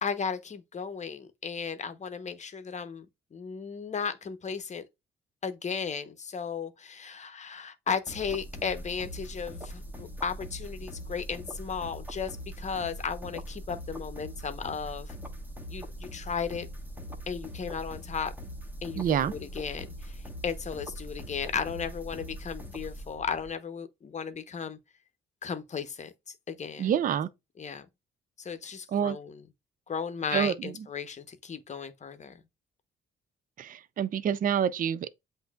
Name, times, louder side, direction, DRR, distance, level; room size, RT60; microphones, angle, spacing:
voice 1, 0.0-3.1 3.3-4.8 5.4-15.1 15.7-16.7 17.3-18.3 18.8-24.8 25.4-26.1 26.5-26.9 27.6-27.9 28.4-29.4 29.9-32.3, left 6 dB, 35° left, 0.8 m, -35 dB
sound 1, 8.1-23.5, equal, 10° right, 1.2 m, -42 dB
voice 2, 19.0-19.3 26.8-27.3 28.9-29.2 30.3-30.7 33.6-35.1, right 9 dB, 45° right, 0.4 m, -27 dB
8.0 x 2.7 x 2.3 m
cardioid pair, 90°, 20 cm